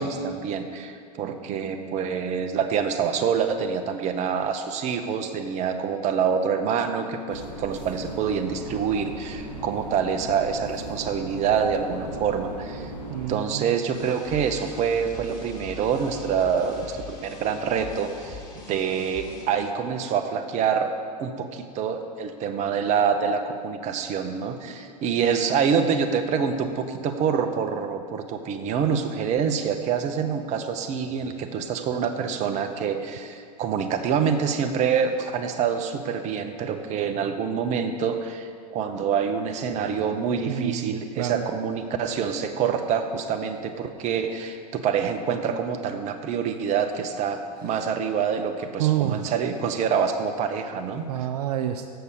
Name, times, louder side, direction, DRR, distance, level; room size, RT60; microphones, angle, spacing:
voice 1, 0.0-12.9 13.3-18.4 18.7-20.9 21.2-51.1, right 7 dB, 35° right, 7 dB, 0.8 m, -26 dB
sound 1, 7.3-13.3, right 1 dB, 85° left, 2.2 m, -37 dB
voice 2, 13.1-13.7 40.5-41.5 48.8-49.3 51.1-51.9, right 12 dB, 65° right, 6 dB, 0.5 m, -28 dB
sound 2, 13.9-19.5, left 1 dB, 20° left, 2.7 m, -42 dB
6.8 x 6.8 x 6.6 m, 2.2 s
hypercardioid pair, 100°, 21 cm